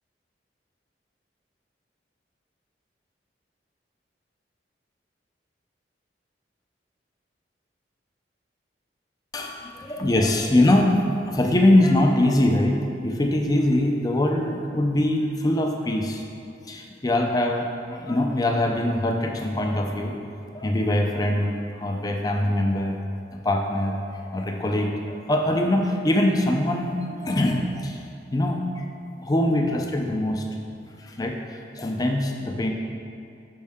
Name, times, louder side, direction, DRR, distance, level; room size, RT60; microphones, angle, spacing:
voice 1, 9.3-10.9 11.3-16.2 16.7-20.1 20.5-23.0 23.4-28.0 28.3-28.8 29.2-30.4 31.0-31.4 31.8-32.7, left 1 dB, 20° left, 2 dB, 0.5 m, -23 dB
6.4 x 5.4 x 3.6 m, 2.5 s
head